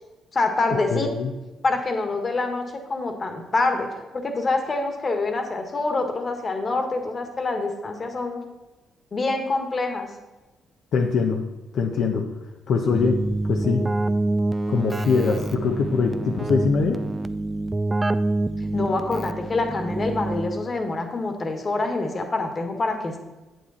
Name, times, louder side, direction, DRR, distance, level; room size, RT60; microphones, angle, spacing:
voice 1, 0.3-1.1 1.6-2.6 2.9-3.9 4.1-8.4 9.1-10.1 18.7-23.2, left 3 dB, 35° left, 5 dB, 1.6 m, -26 dB
voice 2, 0.9-1.3 10.9-11.4 11.7-12.3 12.7-13.9 14.7-17.0, left 5 dB, 65° left, 2 dB, 0.9 m, -23 dB
Keyboard (musical), 12.9-20.8, right 2 dB, 20° right, 0.4 m, -27 dB
9.4 x 8.2 x 4.2 m, 1.1 s
cardioid pair, 90°, 0 cm